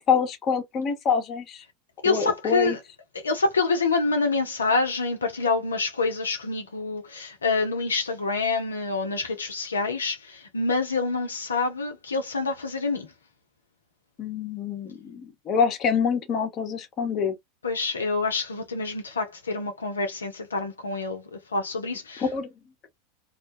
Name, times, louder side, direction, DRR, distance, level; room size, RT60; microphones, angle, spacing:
voice 1, 0.1-1.6 2.0-2.8 14.2-17.4 22.2-22.5, left 6 dB, 35° left, 0.8 m, -26 dB
voice 2, 2.0-2.8 3.1-13.1 17.6-22.3, left 3 dB, 80° left, 0.5 m, -27 dB
2.4 x 2.2 x 2.5 m
figure-of-eight pair, 80°, 0 cm